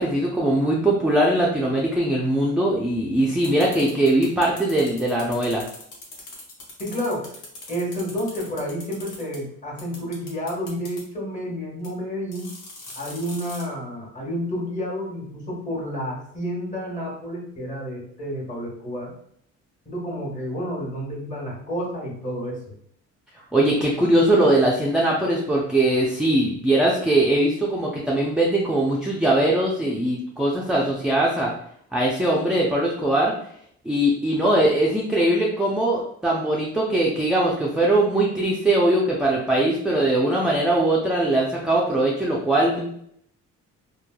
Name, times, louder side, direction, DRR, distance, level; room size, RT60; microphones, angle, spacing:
voice 1, 0.0-5.6 23.5-31.5 31.9-33.3 33.8-42.8, right 1 dB, ahead, -4 dB, 0.4 m, -21 dB
sound 1, 3.4-9.4 9.8-11.0 11.8-11.9 12.3-13.6, left 2 dB, 90° left, 0.8 m, -41 dB
voice 2, 6.8-7.2 7.7-12.5 13.0-19.1 19.8-22.6, equal, 25° left, -3 dB, 1.2 m, -30 dB
3.0 x 2.2 x 2.2 m, 0.68 s
cardioid pair, 90°, 30 cm